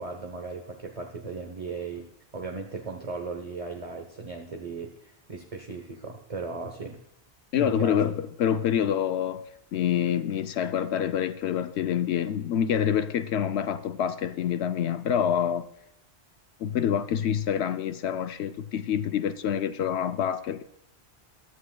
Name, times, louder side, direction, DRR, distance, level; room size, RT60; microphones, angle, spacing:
voice 1, 0.0-7.0 7.5-8.0, right 4 dB, 35° right, 4 dB, 1.0 m, -37 dB
voice 2, 7.5-9.4 9.7-15.7 16.6-20.6, left 9 dB, 80° left, 10 dB, 0.9 m, -26 dB
15.0 x 11.5 x 2.3 m, 0.80 s
omnidirectional pair, 1.1 m